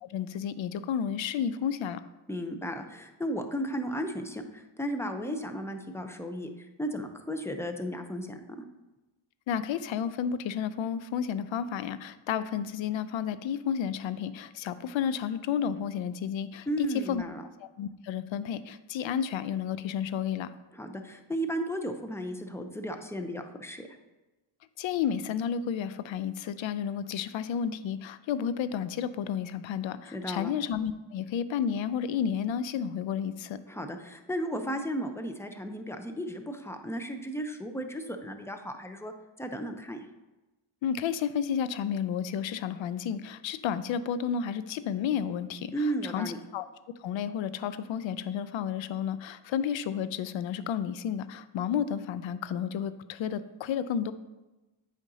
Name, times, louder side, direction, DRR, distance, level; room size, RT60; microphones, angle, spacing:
voice 1, 0.0-2.0 9.5-17.2 17.8-20.5 24.8-33.6 40.8-46.6 47.0-54.1, left 8 dB, 65° left, 14 dB, 0.5 m, -31 dB
voice 2, 2.3-8.4 16.7-17.4 20.7-23.9 30.1-30.5 33.7-39.1 39.4-40.1 45.7-46.4, equal, 5° left, 6 dB, 0.6 m, -34 dB
8.1 x 5.1 x 2.8 m, 1.1 s
cardioid pair, 70°, 49 cm